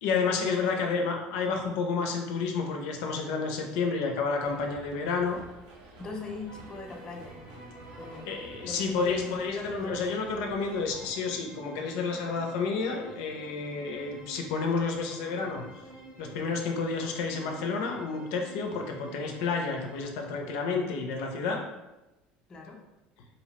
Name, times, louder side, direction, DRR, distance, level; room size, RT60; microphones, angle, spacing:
voice 1, 0.0-5.4 8.3-15.6 16.2-21.6, left 4 dB, 80° left, 2 dB, 0.4 m, -30 dB
sound 1, 4.4-11.1, right 2 dB, 85° right, 0.6 m, -51 dB
voice 2, 6.0-7.4 8.0-8.3 8.7-10.3 22.5-22.8, left 2 dB, 20° left, 0 dB, 0.4 m, -40 dB
sound 2, 6.5-20.0, right 1 dB, 25° right, 0.6 m, -49 dB
2.7 x 2.1 x 2.8 m, 1.0 s
cardioid pair, 135°, 4 cm